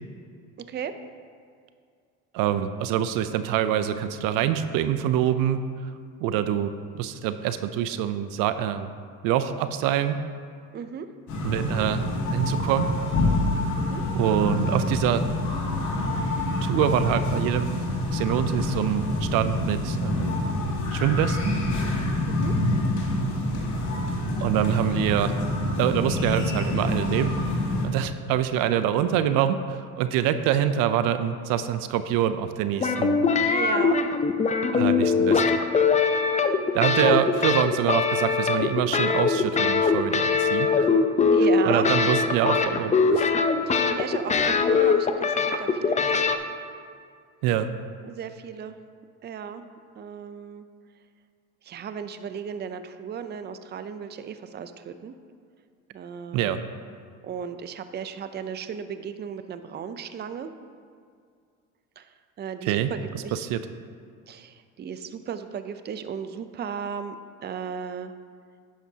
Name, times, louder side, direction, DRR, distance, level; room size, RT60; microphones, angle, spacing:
voice 1, 2.3-5.9 6.2-8.9 9.2-10.2 11.4-12.9 14.1-15.2 16.6-17.8 18.1-20.4 20.9-21.6 24.4-25.3 25.8-27.3 27.8-33.5 34.7-35.6 36.7-40.9 41.6-43.3 47.4-47.7 56.3-56.6 62.6-63.6, right 10 dB, 70° right, 11 dB, 0.6 m, -25 dB
voice 2, 10.7-11.1 13.7-14.0 22.3-22.5 33.1-34.0 41.3-42.0 43.7-46.2 48.0-48.8 49.2-49.7 50.0-50.7 51.6-55.1 55.9-56.5 57.2-60.5 62.0-62.1 62.4-63.4 64.3-67.2 67.4-68.1, right 7 dB, 30° right, 10 dB, 0.6 m, -35 dB
sound 1, 11.3-27.9, left 1 dB, 55° left, 2.4 m, -27 dB
sound 2, 32.8-46.4, left 5 dB, 20° left, 0.6 m, -22 dB
10.5 x 10.0 x 2.8 m, 2.2 s
supercardioid pair, 95°, 35 cm